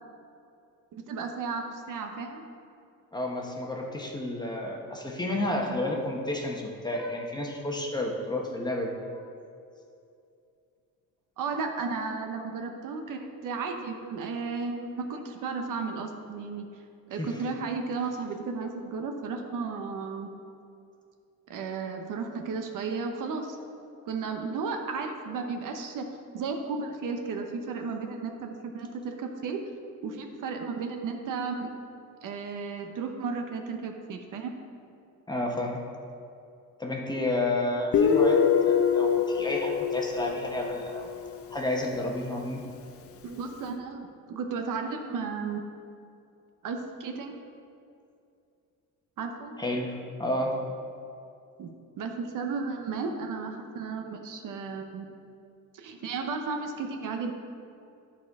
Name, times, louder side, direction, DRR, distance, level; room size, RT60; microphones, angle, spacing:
voice 1, 0.9-2.4 11.4-16.6 17.1-20.3 21.5-23.6 24.1-29.6 30.0-31.7 32.2-34.6 43.2-45.7 46.6-47.4 49.2-49.6 51.6-55.1 55.7-57.3, right 4 dB, 60° right, 4 dB, 0.9 m, -34 dB
voice 2, 3.1-9.2 17.2-17.3 35.3-35.8 36.8-38.4 38.6-41.1 41.5-42.6 49.6-49.9 50.2-50.5, left 1 dB, 10° left, 0 dB, 1.0 m, -31 dB
Guitar, 37.9-41.4, left 7 dB, 40° left, 0.6 m, -24 dB
10.5 x 4.3 x 4.8 m, 2.5 s
cardioid pair, 110°, 35 cm